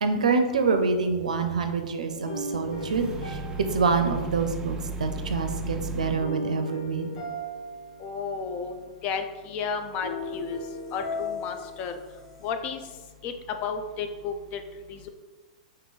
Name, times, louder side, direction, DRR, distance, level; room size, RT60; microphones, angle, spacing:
voice 1, 0.0-3.4 3.7-7.2, right 4 dB, 85° right, 7 dB, 0.5 m, -26 dB
sound 1, 2.3-4.8 6.2-8.6 10.0-12.5, equal, 65° left, 1.3 m, -37 dB
sound 2, 2.6-6.3, right 3 dB, 20° right, 0.3 m, -35 dB
voice 2, 8.0-8.8 9.0-10.6 10.9-12.0 12.4-12.8 13.2-14.6 14.9-15.1, left 5 dB, 40° left, 7 dB, 0.5 m, -32 dB
3.7 x 2.6 x 3.9 m, 1.2 s
hypercardioid pair, 110°, 4 cm